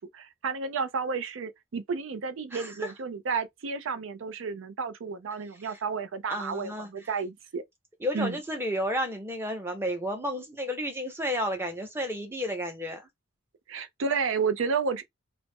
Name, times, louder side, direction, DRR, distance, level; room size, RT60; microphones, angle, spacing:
voice 1, 0.0-7.6 8.1-8.4 13.7-15.0, right 5 dB, 85° right, 0.4 m, -31 dB
voice 2, 2.5-2.9 6.3-6.9 8.0-13.0, equal, 10° right, 0.7 m, -32 dB
2.4 x 2.0 x 3.4 m
head